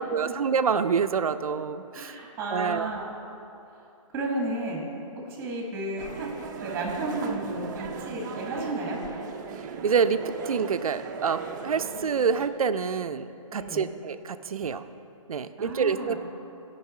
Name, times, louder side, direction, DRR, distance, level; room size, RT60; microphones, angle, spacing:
voice 1, 0.0-2.1 2.5-2.9 9.6-14.8 15.3-16.2, right 6 dB, 90° right, 11 dB, 0.5 m, -27 dB
voice 2, 1.9-3.1 3.7-3.9 4.1-4.8 5.1-6.3 6.6-9.0 13.5-13.9 15.6-16.2, right 2 dB, 15° right, -1 dB, 1.6 m, -33 dB
sound 1, 6.0-12.5, right 6 dB, 35° right, 0.5 m, -37 dB
12.5 x 5.4 x 4.3 m, 2.7 s
hypercardioid pair, 155°, 18 cm